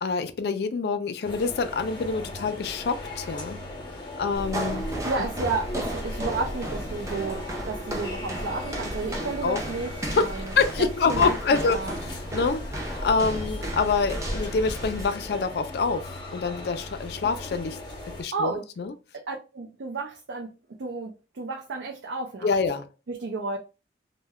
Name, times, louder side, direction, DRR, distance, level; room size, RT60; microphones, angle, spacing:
voice 1, 0.0-3.6 4.2-4.9 9.4-9.6 10.1-11.8 12.3-17.8 18.1-18.9 22.4-22.9, left 4 dB, 60° left, 0.3 m, -26 dB
sound 1, 1.2-18.2, left 1 dB, 25° left, 0.7 m, -38 dB
sound 2, 4.3-15.1, right 1 dB, 15° right, 0.4 m, -34 dB
voice 2, 5.0-10.5 11.0-11.4 11.7-11.9 18.3-18.6 19.1-20.5 20.8-22.5 23.1-23.6, right 3 dB, 75° right, 0.5 m, -32 dB
2.1 x 2.1 x 3.4 m
head